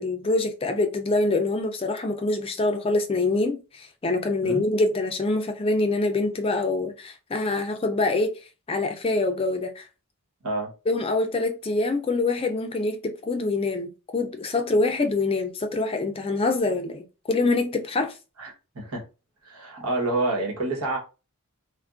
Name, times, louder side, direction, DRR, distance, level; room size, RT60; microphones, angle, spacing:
voice 1, 0.0-8.3 8.7-9.8 10.9-18.1, left 2 dB, 25° left, 0.4 m, -25 dB
voice 2, 18.4-19.0 19.4-21.0, right 2 dB, 80° right, 1.2 m, -28 dB
3.4 x 2.1 x 2.4 m
head